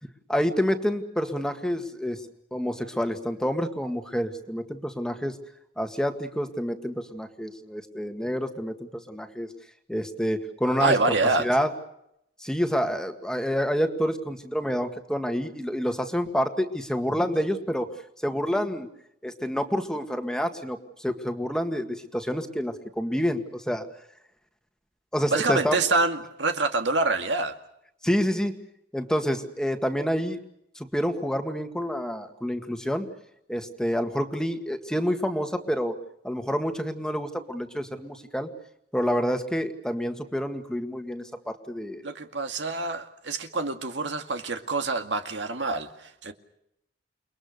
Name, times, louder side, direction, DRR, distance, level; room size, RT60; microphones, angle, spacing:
voice 1, 0.3-2.2 2.5-5.4 5.8-8.8 9.1-9.5 9.9-10.9 11.4-11.7 12.4-17.9 18.2-18.9 19.2-23.9 25.1-25.8 28.0-28.5 28.9-30.4 30.8-33.1 33.5-36.0 36.2-38.5 38.9-42.1, equal, 5° left, 6 dB, 1.9 m, -28 dB
voice 2, 10.8-11.5 25.3-27.5 42.0-46.3, right 3 dB, 75° right, 6 dB, 2.1 m, -26 dB
29.5 x 21.5 x 6.7 m, 0.78 s
head